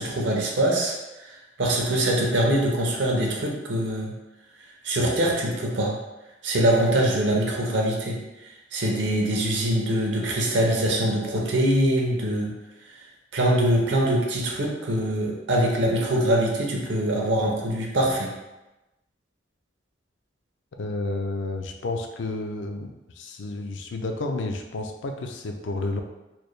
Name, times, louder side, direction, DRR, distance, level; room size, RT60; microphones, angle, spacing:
voice 1, 0.0-4.1 4.8-6.0 6.4-8.2 8.7-12.5 13.3-18.3, right 1 dB, 80° right, -1 dB, 0.8 m, -23 dB
voice 2, 20.8-26.0, left 2 dB, 75° left, 4 dB, 0.4 m, -31 dB
4.3 x 2.2 x 3.2 m, 1.0 s
head